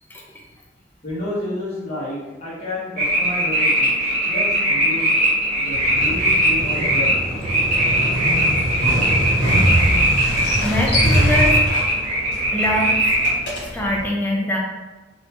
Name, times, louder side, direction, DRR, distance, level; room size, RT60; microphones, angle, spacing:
voice 1, 1.0-3.9 4.2-5.2 5.5-7.1, left 1 dB, 35° left, -8 dB, 1.1 m, -30 dB
sound 1, 3.0-13.3, right 1 dB, 45° right, 1.3 m, -20 dB
Motorcycle, 5.7-14.1, equal, 70° left, 1.3 m, -23 dB
voice 2, 10.6-11.6 12.5-13.0 13.7-14.6, left 1 dB, 10° left, -2 dB, 0.5 m, -23 dB
3.3 x 2.7 x 2.9 m, 1.2 s
head